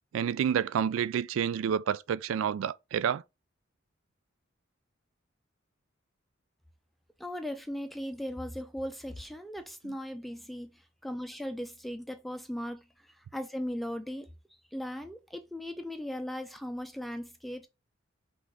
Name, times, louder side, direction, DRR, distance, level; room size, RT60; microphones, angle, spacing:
voice 1, 0.1-3.2, right 8 dB, 85° right, 0.3 m, -29 dB
voice 2, 7.2-14.3 14.7-17.7, equal, ahead, 0.4 m, -38 dB
5.8 x 2.5 x 3.3 m
head